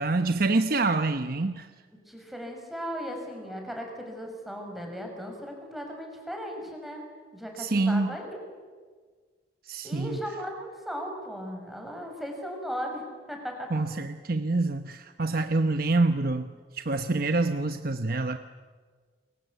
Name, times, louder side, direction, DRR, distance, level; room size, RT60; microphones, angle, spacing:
voice 1, 0.0-1.7 7.6-8.2 9.7-10.2 13.7-18.4, right 3 dB, 55° right, 8 dB, 1.0 m, -26 dB
voice 2, 1.9-7.0 7.3-8.4 9.8-13.0 13.3-13.7, equal, ahead, 2 dB, 5.6 m, -37 dB
29.5 x 23.0 x 8.2 m, 1.6 s
head